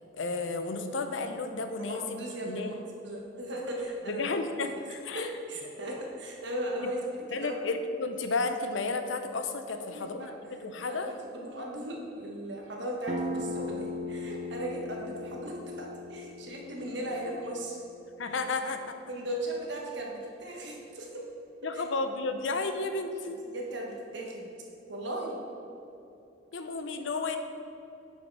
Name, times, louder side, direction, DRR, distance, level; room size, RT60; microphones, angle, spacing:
voice 1, 0.1-2.7 4.1-5.3 6.8-6.9 7.3-11.1 18.2-19.0 21.6-23.4 26.5-27.4, left 3 dB, 75° left, 7 dB, 0.6 m, -32 dB
voice 2, 1.8-4.3 5.1-7.0 7.3-7.5 9.7-10.3 10.8-17.8 19.1-21.2 21.7-21.8 23.5-24.5 24.9-25.4, right 1 dB, 60° right, -1 dB, 1.3 m, -37 dB
sound 1, 13.1-18.5, left 2 dB, 35° right, 0.4 m, -38 dB
7.4 x 5.5 x 4.7 m, 2.8 s
head